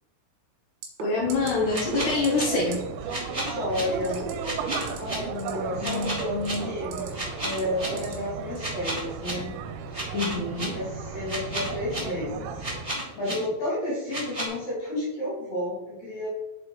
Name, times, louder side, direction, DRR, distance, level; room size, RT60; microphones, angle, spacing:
sound 1, 0.8-1.0 1.3-1.5 1.8-2.0 2.2-2.5 2.7-2.8 4.0-4.3 4.7-5.0 5.4-6.0 6.4-7.1 7.5-8.1 8.6-8.7, right 5 dB, 70° right, 3.4 m, -38 dB
voice 1, 1.0-2.9 5.8-6.7 10.1-10.8, left 4 dB, 75° left, -3 dB, 1.9 m, -27 dB
sound 2, 1.2-13.0, right 5 dB, 85° right, 3.0 m, -35 dB
sound 3, 1.7-2.4 3.1-3.8 4.4-5.1 5.8-6.5 7.1-7.9 8.6-9.3 9.9-10.6 11.3-12.0 12.6-13.3 14.1-14.5, right 1 dB, 10° right, 2.0 m, -32 dB
voice 2, 3.3-4.3 4.9-6.4 6.6-7.1 7.4-9.5 10.7-12.6 13.2-16.3, left 1 dB, 50° left, -8 dB, 3.9 m, -31 dB
8.7 x 7.1 x 3.2 m, 1.1 s
omnidirectional pair, 5.2 m